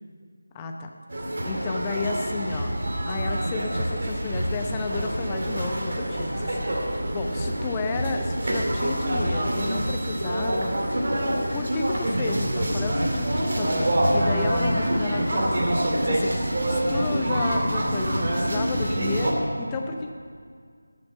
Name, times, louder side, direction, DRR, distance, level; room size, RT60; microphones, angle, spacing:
voice 1, 0.5-0.9 1.4-2.7 3.1-10.8 11.5-20.1, left 3 dB, 15° left, 3 dB, 0.7 m, -32 dB
sound 1, 1.1-19.3, right 1 dB, 50° right, 2.4 m, -26 dB
12.0 x 6.9 x 9.5 m, 2.1 s
figure-of-eight pair, 170°, 0 cm